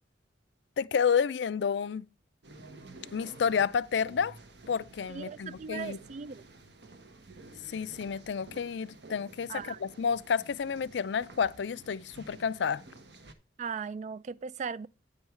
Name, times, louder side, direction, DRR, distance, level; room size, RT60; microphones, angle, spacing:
voice 1, 0.8-2.1 3.1-4.4 4.7-6.0 7.7-12.8, left 6 dB, 70° left, 0.4 m, -30 dB
sound 1, 2.4-13.3, right 2 dB, 65° right, 1.2 m, -52 dB
voice 2, 5.1-6.4 9.5-9.8 13.6-14.9, right 6 dB, 40° right, 0.3 m, -38 dB
9.6 x 5.5 x 4.4 m
head